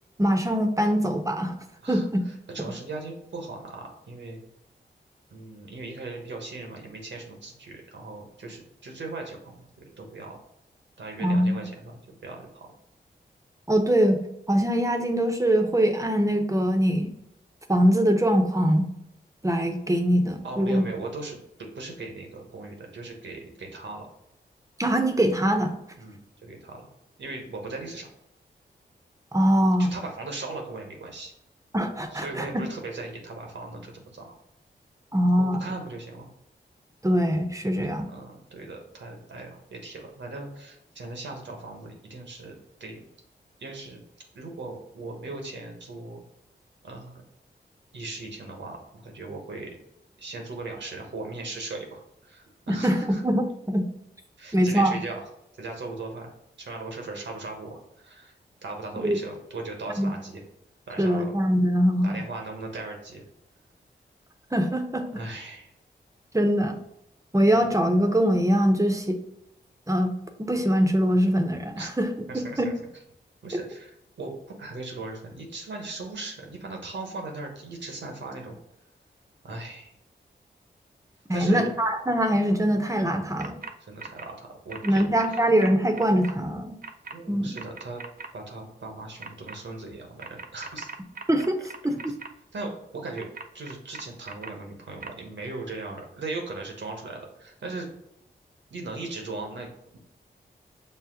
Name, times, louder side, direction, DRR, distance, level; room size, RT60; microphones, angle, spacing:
voice 1, 0.2-1.5 1.9-2.2 11.2-11.6 13.7-17.1 17.7-18.9 19.4-20.8 24.8-25.7 29.3-29.9 31.7-32.4 35.1-35.6 37.0-38.1 52.7-53.9 54.5-55.0 59.0-59.2 60.0-60.1 61.0-62.2 64.5-65.0 66.3-66.8 67.3-69.2 69.9-72.1 72.3-72.7 81.3-83.6 84.8-86.8 87.3-87.6 91.3-91.6 91.8-92.1, equal, 15° right, 4 dB, 0.8 m, -23 dB
voice 2, 1.8-4.4 5.3-10.4 11.0-12.7 20.4-24.1 26.0-26.8 27.2-28.1 29.8-31.3 32.1-34.4 35.4-36.3 38.1-43.0 43.6-44.0 44.3-46.2 46.8-47.2 47.9-49.8 50.2-53.2 54.4-55.2 55.6-56.3 56.6-58.3 58.6-60.4 60.9-61.3 62.0-63.2 65.1-65.7 71.8-71.9 72.3-72.7 73.4-74.3 74.6-78.6 79.4-79.9 81.3-81.7 83.8-85.4 87.1-88.0 88.3-90.9 92.5-93.3 93.5-97.9 98.7-100.0, right 3 dB, 75° right, 2 dB, 1.1 m, -38 dB
sound 1, 83.4-83.7 84.0-84.3 84.7-86.3 86.8-87.1 87.5-88.3 89.2-89.5 90.2-92.3 93.2-94.5 95.0-95.1, right 4 dB, 50° right, 0.5 m, -39 dB
5.6 x 2.0 x 3.7 m, 0.80 s
cardioid pair, 40°, 19 cm